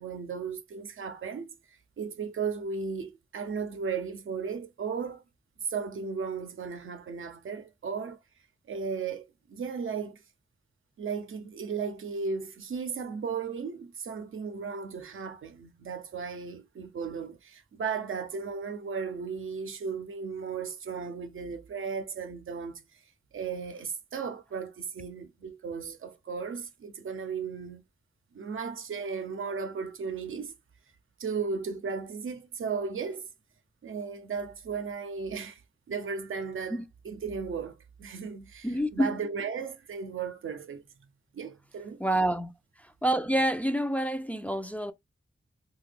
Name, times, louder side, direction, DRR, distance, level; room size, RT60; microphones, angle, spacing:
voice 1, 0.0-1.5 2.0-5.2 5.6-8.2 8.7-10.2 11.0-23.0 23.3-27.8 28.3-30.5 31.2-33.3 33.8-35.6 35.9-36.8 37.0-38.7 38.9-40.8 41.3-42.0, right 5 dB, 85° right, 0.5 m, -35 dB
voice 2, 38.6-39.2 42.0-42.5 42.8-44.9, right 1 dB, 5° left, 0.3 m, -28 dB
2.8 x 2.3 x 3.3 m
wide cardioid pair, 75°, 21 cm